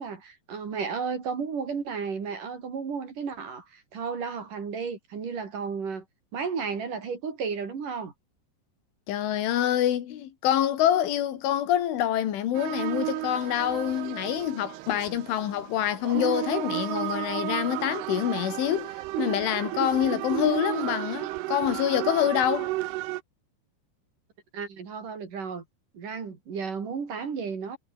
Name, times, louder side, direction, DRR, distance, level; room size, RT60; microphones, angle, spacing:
voice 1, 0.0-6.0 6.3-8.1 24.5-25.6 25.9-27.8, right 5 dB, 45° right, 4.7 m, -33 dB
voice 2, 9.1-18.9 19.2-22.7, left 11 dB, 80° left, 4.6 m, -26 dB
sound 1, 12.5-23.2, right 18 dB, 80° right, 2.5 m, -33 dB
omnidirectional pair, 5.5 m